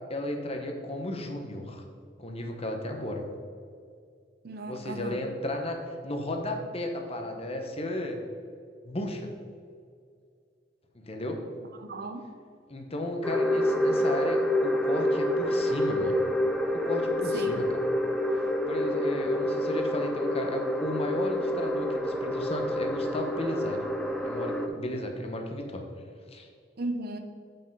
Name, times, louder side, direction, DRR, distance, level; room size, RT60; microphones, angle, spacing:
voice 1, 0.1-1.8 2.2-3.2 4.7-5.8 6.0-8.2 8.8-9.3 10.9-11.4 12.7-16.2 16.7-17.8 18.7-23.8 24.2-25.8 26.3-26.5, left 1 dB, 35° left, 3 dB, 1.0 m, -34 dB
voice 2, 4.4-5.2 11.8-12.2 17.3-17.6 26.8-27.2, right 2 dB, 60° right, 6 dB, 0.8 m, -35 dB
sound 1, 13.2-24.7, left 1 dB, 5° left, 0.6 m, -28 dB
8.1 x 5.5 x 5.4 m, 2.3 s
head